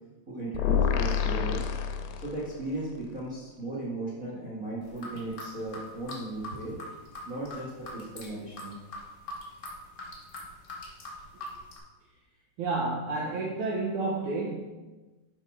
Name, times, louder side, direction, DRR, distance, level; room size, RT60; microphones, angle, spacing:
voice 1, 0.3-1.7 2.1-6.8 7.2-8.8, right 2 dB, 40° right, -6 dB, 1.2 m, -36 dB
sound 1, 0.5-2.7, left 8 dB, 85° left, 2.7 m, -28 dB
sound 2, 4.8-11.8, left 2 dB, 70° left, 1.0 m, -42 dB
voice 2, 12.6-14.7, right 3 dB, 80° right, -2 dB, 1.8 m, -30 dB
11.0 x 5.1 x 4.3 m, 1.2 s
omnidirectional pair, 4.8 m